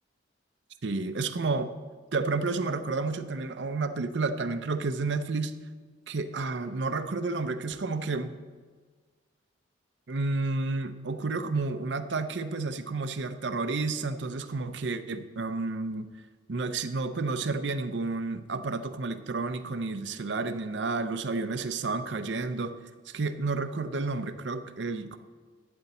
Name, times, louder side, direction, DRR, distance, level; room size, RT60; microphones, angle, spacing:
voice 1, 0.8-1.7 2.1-5.6 6.1-8.3 10.1-16.1 16.5-22.7 23.1-25.2, right 3 dB, 65° right, 10 dB, 0.6 m, -31 dB
12.0 x 7.9 x 4.3 m, 1.5 s
head